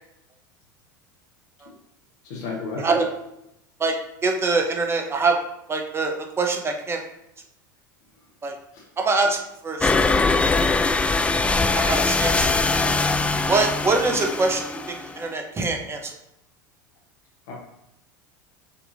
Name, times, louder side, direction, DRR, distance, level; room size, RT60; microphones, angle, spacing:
voice 1, 2.2-2.9 8.7-8.9 17.5-17.6, left 3 dB, 65° left, -4 dB, 1.3 m, -33 dB
voice 2, 2.8-3.1 3.8-3.9 4.2-5.4 5.7-7.0 8.4-8.5 9.0-9.4 9.6-10.0 11.7-12.6 13.5-16.2, right 3 dB, 25° right, 3 dB, 0.9 m, -24 dB
sound 1, 9.8-15.3, left 3 dB, 10° left, 0.3 m, -22 dB
6.7 x 2.9 x 2.6 m, 0.84 s
hypercardioid pair, 80°, 11 cm